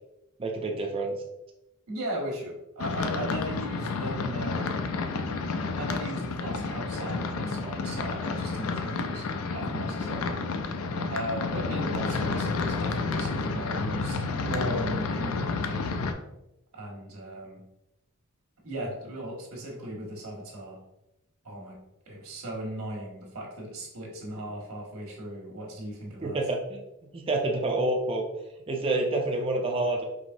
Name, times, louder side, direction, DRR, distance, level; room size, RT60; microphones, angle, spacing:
voice 1, 0.4-1.2 26.2-26.8 27.1-28.3 28.7-30.0, right 2 dB, 25° right, 1 dB, 0.4 m, -28 dB
voice 2, 1.9-4.8 5.8-10.4 11.1-16.0 16.7-17.6 18.6-20.8 21.4-21.8 22.1-26.4, right 1 dB, 70° right, -2 dB, 1.3 m, -37 dB
sound 1, 2.8-16.1, left 4 dB, 75° left, 0.4 m, -30 dB
4.8 x 3.1 x 2.6 m, 0.89 s
head